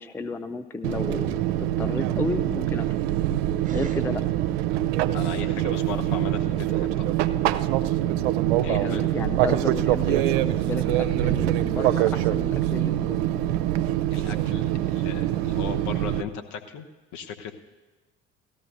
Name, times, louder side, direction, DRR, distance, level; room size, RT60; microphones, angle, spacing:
voice 1, 0.0-2.9 3.7-4.2 8.6-13.2, left 3 dB, 5° left, 10 dB, 0.4 m, -32 dB
Fixed-wing aircraft airplane, 0.8-16.2, right 13 dB, 60° right, 0.5 m, -24 dB
sound 1, 3.6-4.9, right 6 dB, 20° right, 1.1 m, -37 dB
voice 2, 5.1-7.1 8.6-9.0 14.1-16.9 17.1-17.5, left 7 dB, 55° left, 5 dB, 1.0 m, -36 dB
18.0 x 13.0 x 2.6 m, 1.2 s
figure-of-eight pair, 55°, 36 cm